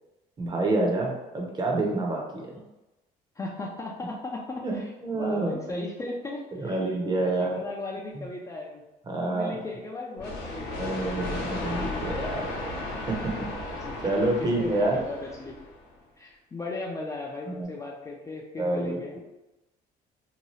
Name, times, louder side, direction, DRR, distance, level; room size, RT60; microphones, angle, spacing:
voice 1, 0.4-2.6 4.6-5.9 6.6-7.6 8.1-8.3 9.1-9.6 10.8-12.4 13.1-13.2 14.0-15.0 17.5-17.7 18.6-19.0, right 2 dB, 25° right, 0 dB, 0.7 m, -28 dB
voice 2, 3.4-6.8 7.2-8.8 9.2-10.8 13.8-14.1 14.4-15.6 16.2-19.2, left 2 dB, 20° left, -2 dB, 0.3 m, -37 dB
sound 1, 10.2-15.9, left 2 dB, 75° left, 0.7 m, -34 dB
2.8 x 2.2 x 3.0 m, 1.0 s
cardioid pair, 110°, 17 cm